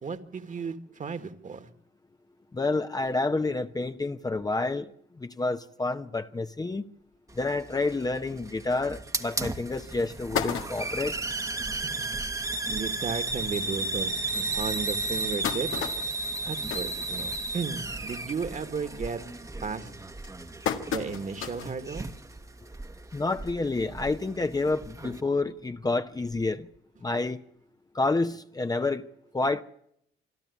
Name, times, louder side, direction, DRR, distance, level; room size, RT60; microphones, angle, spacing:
voice 1, 0.0-1.7 11.8-12.1 12.7-15.7 16.5-19.2 19.6-19.9 20.9-22.1, right 5 dB, 40° right, 1.8 m, -34 dB
voice 2, 2.5-4.9 5.2-6.8 7.3-11.1 23.1-26.7 27.0-27.4 27.9-29.1 29.3-29.6, left 3 dB, 20° left, 0.8 m, -29 dB
Hiss, 7.3-25.2, right 2 dB, 15° right, 1.2 m, -34 dB
sound 1, 9.2-9.3 9.8-9.9 10.1-11.2 11.7-11.8 12.1-12.2 12.5-12.7 13.4-13.5 14.0-14.1 14.9-17.7 18.1-18.4 18.8-19.2 19.8-21.8 22.2-22.3 23.5-23.6, left 8 dB, 85° left, 1.6 m, -34 dB
26.0 x 12.5 x 8.4 m
cardioid pair, 90°, 20 cm